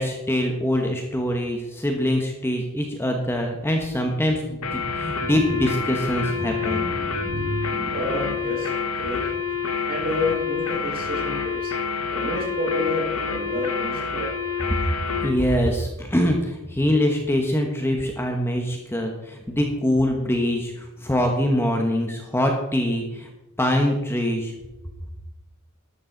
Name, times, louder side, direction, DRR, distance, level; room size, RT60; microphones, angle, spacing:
voice 1, 0.0-6.9 14.7-14.8 15.2-23.3 23.6-24.5, equal, 10° left, 2 dB, 1.2 m, -24 dB
sound 1, 4.6-15.4, left 5 dB, 75° left, 1.2 m, -28 dB
voice 2, 4.8-5.4 6.1-9.4 9.8-11.7 12.1-14.3, left 1 dB, 40° right, -2 dB, 4.9 m, -30 dB
12.5 x 11.5 x 4.0 m, 1.0 s
head